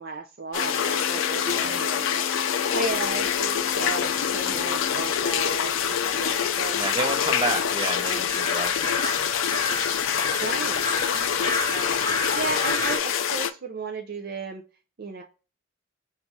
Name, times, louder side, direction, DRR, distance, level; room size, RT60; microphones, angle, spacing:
voice 1, 0.0-2.3 2.6-6.8 8.1-8.2 10.4-10.8 11.1-11.9 12.3-14.6 15.0-15.2, right 4 dB, 50° right, 0.5 m, -34 dB
sound 1, 0.5-13.5, left 8 dB, 75° left, 0.4 m, -26 dB
Organ, 0.6-5.6, left 7 dB, 55° left, 0.9 m, -39 dB
voice 2, 1.5-1.8 6.7-9.2, right 2 dB, 25° right, 0.8 m, -31 dB
sound 2, 2.7-13.0, left 2 dB, 20° left, 0.6 m, -34 dB
4.1 x 2.4 x 4.5 m
head